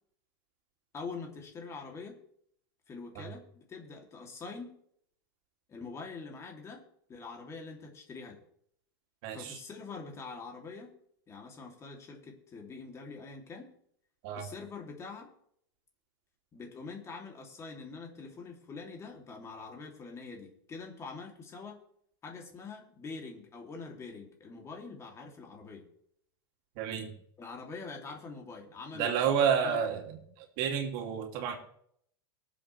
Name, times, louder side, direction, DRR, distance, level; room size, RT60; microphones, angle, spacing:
voice 1, 0.9-2.2 2.9-4.8 5.7-6.8 7.1-8.4 9.3-11.0 11.3-13.7 14.3-15.3 16.5-21.8 22.2-25.9 27.4-29.2 29.6-29.8, left 4 dB, 25° left, 1 dB, 3.0 m, -44 dB
voice 2, 9.2-9.6 14.2-14.5 26.8-27.1 28.9-31.6, right 7 dB, 55° right, 2 dB, 2.7 m, -30 dB
23.0 x 7.7 x 3.4 m, 0.68 s
supercardioid pair, 130°, 12 cm